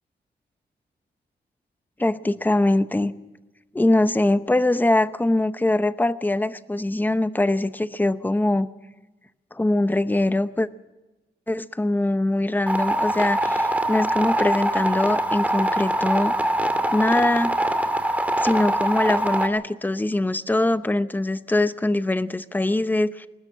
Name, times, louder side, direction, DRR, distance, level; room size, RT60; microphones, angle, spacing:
voice 1, 2.0-3.1 3.7-8.7 9.5-10.7 11.5-16.3 16.9-17.6 18.4-23.3, left 2 dB, 10° left, 13 dB, 0.8 m, -22 dB
sound 1, 12.7-19.5, right 1 dB, 10° right, 2.1 m, -23 dB
21.5 x 19.5 x 7.4 m, 1.1 s
wide cardioid pair, 130°, 18 cm